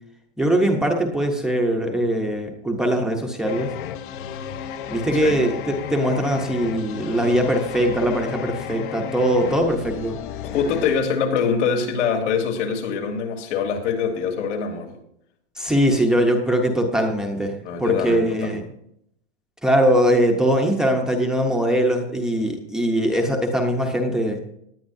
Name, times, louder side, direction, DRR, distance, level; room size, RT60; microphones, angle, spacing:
voice 1, 0.4-3.7 4.9-10.2 15.6-18.6 19.6-24.4, equal, ahead, 2 dB, 0.7 m, -21 dB
sound 1, 3.4-11.0, left 9 dB, 45° left, 0.7 m, -33 dB
voice 2, 10.4-14.9 17.6-18.6, left 6 dB, 80° left, 2 dB, 3.2 m, -24 dB
18.5 x 10.5 x 2.6 m, 0.74 s
supercardioid pair, 170°, 35 cm